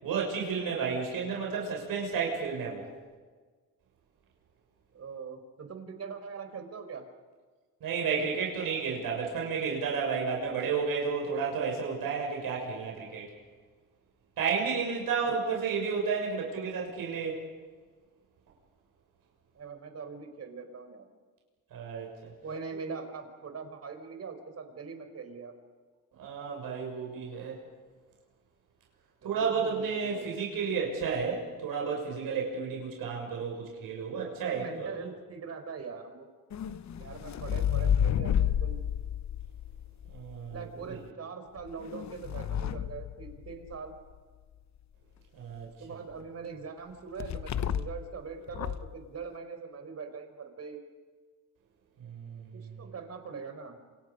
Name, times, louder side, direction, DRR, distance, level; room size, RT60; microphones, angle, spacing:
voice 1, 0.0-2.9 7.8-13.3 14.4-17.4 21.7-22.3 26.1-27.6 29.2-35.1 40.1-40.9 45.3-45.7 52.0-52.9, right 5 dB, 80° right, -1 dB, 6.5 m, -32 dB
voice 2, 4.9-7.0 15.2-15.4 19.5-21.0 22.4-25.5 29.2-30.3 34.4-36.3 36.9-38.8 40.5-43.9 45.8-50.8 52.8-53.8, right 5 dB, 45° right, 7 dB, 4.5 m, -42 dB
sound 1, 36.5-40.6 41.6-43.9 47.2-48.1 48.5-49.0, left 9 dB, 55° left, 1.0 m, -31 dB
27.5 x 27.5 x 5.5 m, 1.4 s
cardioid pair, 115°, 34 cm